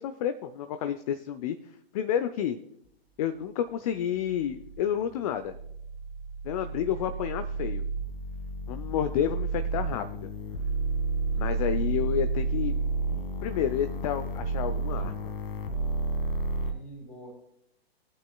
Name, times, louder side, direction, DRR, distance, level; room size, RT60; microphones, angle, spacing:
voice 1, 0.0-1.6 1.9-2.6 3.2-5.6 6.4-7.8 8.7-10.3 11.3-12.7 13.4-15.3, left 9 dB, 35° left, 10 dB, 0.7 m, -30 dB
sound 1, 3.7-16.7, right 3 dB, 60° left, 1.9 m, -31 dB
voice 2, 11.3-11.7 16.6-17.3, right 1 dB, 20° left, 3 dB, 3.8 m, -46 dB
19.5 x 8.9 x 2.3 m, 0.74 s
figure-of-eight pair, 125°, 32 cm